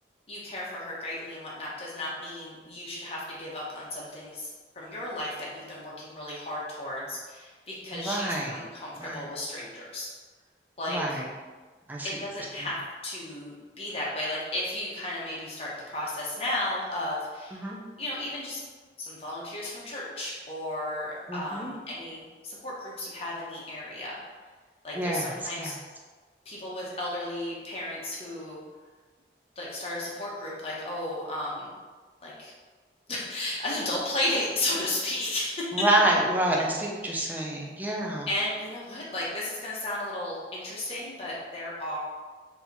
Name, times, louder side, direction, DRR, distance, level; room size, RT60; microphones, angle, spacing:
voice 1, 0.3-4.5 4.7-10.1 10.8-11.2 12.0-12.8 13.0-17.7 18.0-18.6 19.0-24.2 24.8-25.7 26.4-28.6 29.6-31.7 32.2-32.5 33.1-35.7 37.1-37.3 38.3-42.0, left 1 dB, 35° left, -5 dB, 1.1 m, -34 dB
voice 2, 7.9-8.6 9.0-9.3 10.9-11.3 11.9-12.1 12.6-12.7 17.5-17.8 21.3-21.7 24.9-25.8 35.7-38.3, right 1 dB, 10° right, -1 dB, 0.5 m, -28 dB
3.9 x 2.9 x 4.0 m, 1.4 s
head